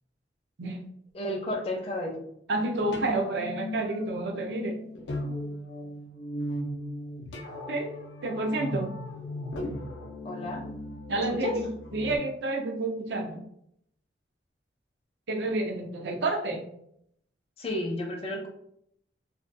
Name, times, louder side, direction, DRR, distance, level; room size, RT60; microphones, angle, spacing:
voice 1, 1.1-2.2 10.2-10.6 11.4-11.5 17.6-18.5, left 1 dB, 35° left, 2 dB, 0.5 m, -32 dB
voice 2, 2.5-4.8 7.7-7.9 8.2-8.9 11.1-13.4 15.3-16.7, right 2 dB, 70° right, 3 dB, 0.5 m, -29 dB
sound 1, 2.8-12.2, left 1 dB, 90° left, 0.5 m, -37 dB
2.5 x 2.2 x 2.5 m, 0.72 s
head